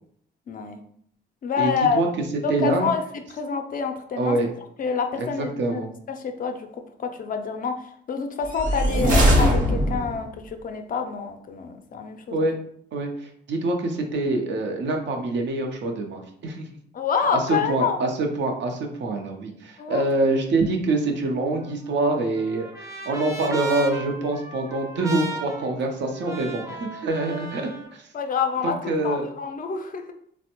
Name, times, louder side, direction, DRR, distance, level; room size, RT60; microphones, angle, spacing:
voice 1, 0.5-0.8 1.4-2.0 2.4-3.0 3.3-4.4 4.8-6.7 7.0-7.8 8.1-12.5 16.9-18.0 19.8-20.0 28.1-30.0, left 6 dB, 45° left, 6 dB, 0.4 m, -27 dB
voice 2, 1.6-2.1 2.5-2.9 4.2-4.5 5.2-5.9 12.3-12.6 12.9-16.7 17.3-28.1 28.6-29.3, right 2 dB, 65° right, 2 dB, 0.6 m, -25 dB
sound 1, 8.5-10.3, equal, 40° right, 0.9 m, -20 dB
Trumpet, 21.6-27.9, right 3 dB, 15° right, 0.6 m, -36 dB
3.3 x 2.1 x 2.9 m, 0.66 s
cardioid pair, 90°, 20 cm